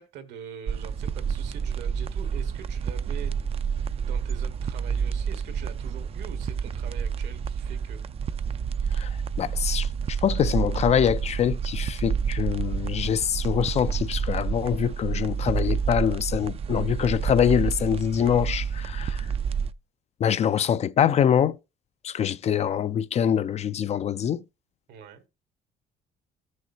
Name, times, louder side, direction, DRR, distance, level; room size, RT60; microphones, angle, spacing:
voice 1, 0.0-3.3 4.0-8.0 24.9-25.2, right 8 dB, 80° right, 1.6 m, -44 dB
sound 1, 0.7-19.7, right 6 dB, 35° right, 0.4 m, -29 dB
voice 2, 9.4-19.3 20.2-21.6 22.0-24.4, left 9 dB, 40° left, 0.4 m, -24 dB
14.5 x 6.3 x 2.7 m
cardioid pair, 110°, 17 cm